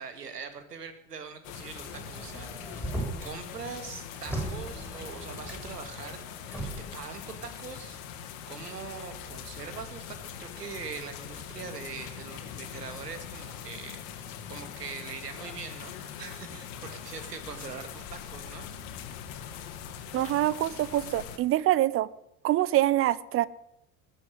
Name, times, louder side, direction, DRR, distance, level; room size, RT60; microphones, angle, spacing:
voice 1, 0.0-2.9 3.2-8.0 8.5-18.7 19.4-19.5, right 5 dB, 75° right, 9 dB, 2.2 m, -42 dB
sound 1, 1.4-21.4, left 8 dB, 55° left, 2.2 m, -42 dB
Motor vehicle (road), 1.8-3.4 3.7-5.8 6.4-6.9, right 1 dB, 5° right, 6.8 m, -37 dB
voice 2, 20.1-22.1 22.4-23.5, right 14 dB, 30° right, 20 dB, 0.6 m, -25 dB
20.0 x 7.7 x 7.9 m, 0.80 s
figure-of-eight pair, 70°, 48 cm